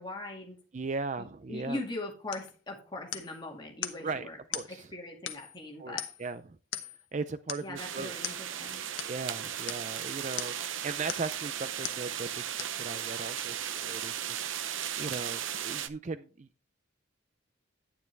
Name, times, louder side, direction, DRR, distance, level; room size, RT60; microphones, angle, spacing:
voice 1, 0.0-0.6 1.2-4.4 4.7-6.1 7.6-8.8, left 2 dB, 20° left, 0 dB, 2.1 m, -40 dB
voice 2, 0.7-1.8 4.0-4.9 5.8-6.6 7.1-8.1 9.1-12.5 12.8-16.5, right 4 dB, 35° right, 13 dB, 0.4 m, -38 dB
sound 1, 2.3-2.5 3.1-3.4 3.8-4.0 4.5-4.7 5.3-5.6 6.0-6.3 6.7-7.0 7.5-7.7 8.2-8.4 9.0-9.1 9.7-9.9 10.4-10.6 11.1-11.4 11.8-12.0 12.6-12.8 13.4-13.5, left 10 dB, 75° left, 0.9 m, -39 dB
sound 2, 7.8-15.9, right 9 dB, 70° right, 0.7 m, -36 dB
9.8 x 9.3 x 3.3 m, 0.35 s
head